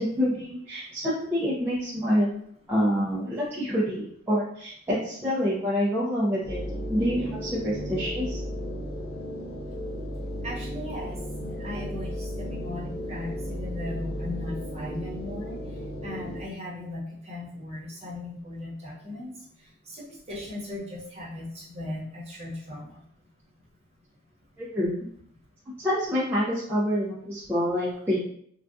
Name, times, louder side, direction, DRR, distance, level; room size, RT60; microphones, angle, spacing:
voice 1, 0.0-2.3 2.7-6.6 6.9-8.4 24.6-25.0 25.8-28.2, equal, 10° right, -9 dB, 0.5 m, -27 dB
sound 1, 6.4-16.4, equal, 50° left, 0.5 m, -34 dB
voice 2, 10.4-23.1, left 1 dB, 30° right, -5 dB, 1.0 m, -38 dB
3.4 x 2.3 x 2.6 m, 0.65 s
head